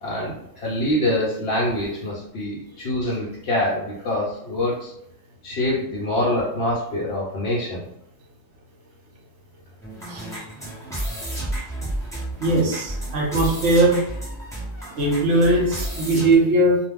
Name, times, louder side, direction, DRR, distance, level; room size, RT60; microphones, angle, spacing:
voice 1, 0.0-4.9 5.4-7.8, left 1 dB, 60° left, -6 dB, 1.0 m, -25 dB
sound 1, 9.8-16.3, right 1 dB, 5° left, 0.8 m, -32 dB
voice 2, 12.4-14.0 15.0-16.8, right 2 dB, 70° right, -1 dB, 1.0 m, -19 dB
2.5 x 2.4 x 3.4 m, 0.74 s
omnidirectional pair, 1.3 m